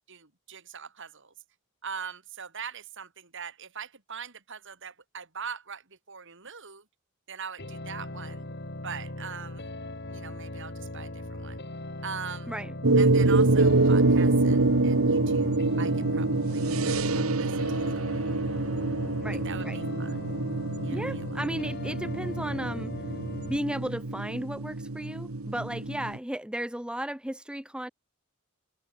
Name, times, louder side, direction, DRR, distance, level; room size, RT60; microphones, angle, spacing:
voice 1, 0.1-1.3 1.8-6.8 7.3-8.5 8.8-9.7 10.1-11.6 12.0-12.5 13.0-18.4 19.3-20.3 20.8-21.4, right 6 dB, 60° right, 4.7 m, -42 dB
sound 1, 7.6-23.6, left 1 dB, 55° left, 5.1 m, -39 dB
sound 2, 12.8-26.2, right 2 dB, 80° right, 1.4 m, -26 dB
voice 2, 19.2-19.8 20.9-22.9 23.5-27.9, right 1 dB, 5° right, 1.0 m, -34 dB
head